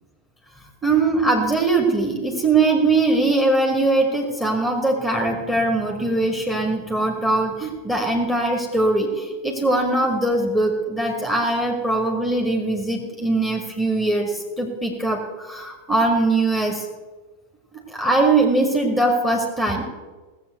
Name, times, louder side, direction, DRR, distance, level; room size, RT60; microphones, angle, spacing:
voice 1, 0.8-16.8 17.9-19.8, right 2 dB, 10° right, 1 dB, 2.2 m, -21 dB
17.5 x 7.5 x 7.9 m, 1.3 s
figure-of-eight pair, 90°, 0 cm